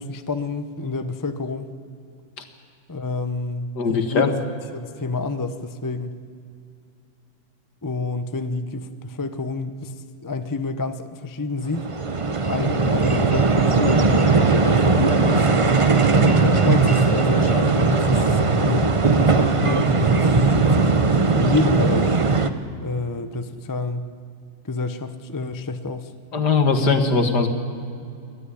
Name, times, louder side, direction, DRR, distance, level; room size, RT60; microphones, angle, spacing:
voice 1, 0.0-1.7 2.9-4.4 4.7-6.2 7.8-9.9 10.2-11.8 12.4-15.5 16.2-20.9 21.3-22.1 22.8-24.1 24.6-26.1, left 3 dB, 25° left, 9 dB, 0.4 m, -28 dB
voice 2, 3.8-4.3 26.3-27.5, left 4 dB, 60° left, 6 dB, 2.3 m, -20 dB
sound 1, 11.7-22.5, right 4 dB, 40° right, 0.4 m, -18 dB
29.0 x 12.5 x 9.9 m, 2.4 s
omnidirectional pair, 2.1 m